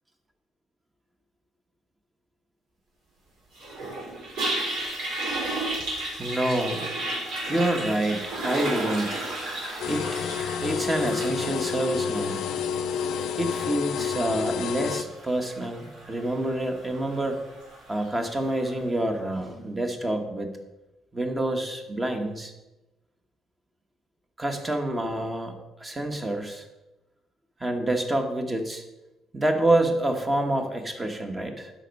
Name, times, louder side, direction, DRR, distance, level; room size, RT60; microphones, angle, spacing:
Toilet flush, 3.5-18.8, right 1 dB, 70° right, 3.9 m, -34 dB
voice 1, 6.2-6.9 7.4-9.2 9.9-10.1 10.6-12.4 13.4-17.4 17.9-20.5 21.1-22.5 24.4-26.6 27.6-28.8 29.3-31.7, right 1 dB, 15° right, 5 dB, 1.2 m, -27 dB
sound 1, 9.8-15.0, left 7 dB, 75° left, 0.5 m, -29 dB
11.5 x 5.2 x 5.3 m, 1.0 s
cardioid pair, 140°, 0 cm